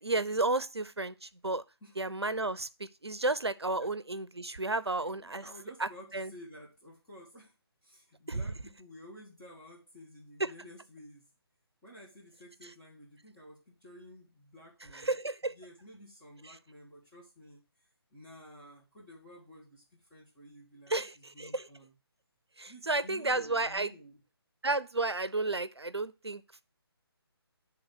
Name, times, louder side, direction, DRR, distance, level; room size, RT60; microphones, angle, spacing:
voice 1, 0.0-1.6 2.0-5.4 5.8-6.3 8.3-8.4 10.4-10.5 14.9-15.5 20.9-21.7 22.6-23.9 24.6-26.6, right 2 dB, 80° right, 0.7 m, -32 dB
voice 2, 4.8-7.5 7.8-11.2 11.8-15.2 15.5-21.9 22.7-24.2, equal, 15° left, 2.0 m, -53 dB
9.3 x 3.7 x 4.6 m
figure-of-eight pair, 150°, 14 cm